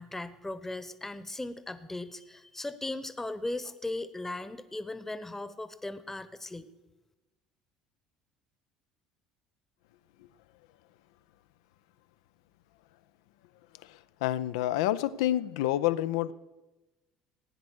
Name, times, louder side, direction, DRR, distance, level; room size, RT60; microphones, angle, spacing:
voice 1, 0.0-6.7, left 2 dB, 10° left, 14 dB, 1.0 m, -38 dB
voice 2, 14.2-16.3, left 13 dB, 70° left, 15 dB, 0.5 m, -28 dB
16.0 x 9.5 x 6.4 m, 1.1 s
figure-of-eight pair, 60°, 3 cm